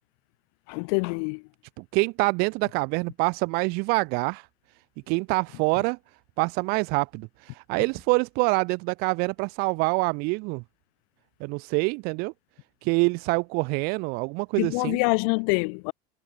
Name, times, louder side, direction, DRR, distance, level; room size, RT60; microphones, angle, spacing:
voice 1, 0.7-1.4 14.6-15.9, left 39 dB, 65° left, 1.6 m, -25 dB
voice 2, 1.9-4.4 5.1-6.0 6.4-10.6 11.4-12.3 12.8-15.0, right 30 dB, 55° right, 0.6 m, -25 dB
cardioid pair, 160°, 19 cm